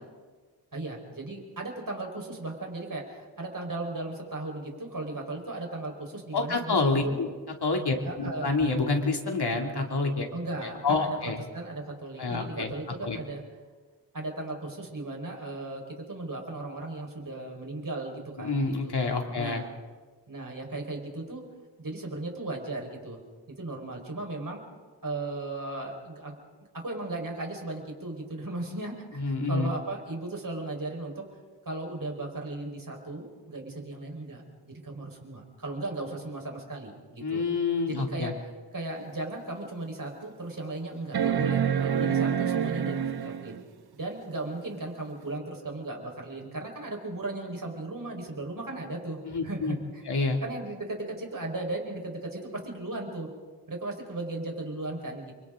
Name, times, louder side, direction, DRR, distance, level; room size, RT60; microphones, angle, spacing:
voice 1, 0.7-7.2 8.0-8.5 10.3-13.4 14.1-18.9 19.3-19.7 20.3-21.4 21.8-23.2 23.6-24.6 25.0-26.4 26.7-31.2 31.6-37.4 37.9-38.3 38.7-43.6 43.9-50.0 50.4-53.3 53.7-55.3, right 2 dB, 55° right, 1 dB, 4.8 m, -36 dB
voice 2, 6.3-7.3 7.6-10.3 10.8-11.4 12.2-12.7 13.0-13.2 18.4-19.6 29.2-29.7 37.2-38.3 49.2-49.7 50.1-50.4, left 3 dB, 75° left, 2 dB, 2.8 m, -27 dB
sound 1, 39.0-39.1 39.7-39.8 41.1-43.6 45.3-45.4, right 8 dB, 70° right, 0.9 m, -27 dB
29.5 x 24.5 x 3.8 m, 1.4 s
wide cardioid pair, 75°, 40 cm